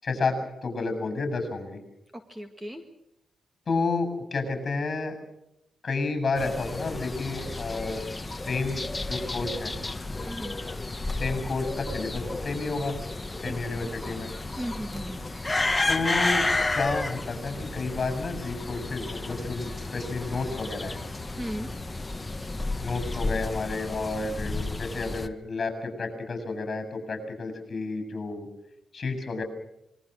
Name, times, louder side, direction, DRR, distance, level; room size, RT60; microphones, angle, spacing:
voice 1, 0.0-0.4 0.6-1.8 3.7-5.2 5.8-8.1 8.4-9.7 11.1-13.0 13.4-14.3 15.9-16.5 16.7-21.0 22.8-28.5 28.9-29.4, left 3 dB, 40° left, 9 dB, 7.7 m, -31 dB
voice 2, 2.3-2.8 10.2-10.6 13.4-13.9 14.6-15.3 21.4-21.7, equal, 10° right, 6 dB, 2.0 m, -36 dB
sound 1, 6.4-25.3, left 2 dB, 15° left, 1.4 m, -32 dB
26.5 x 22.5 x 6.5 m, 0.84 s
wide cardioid pair, 125°, 0 cm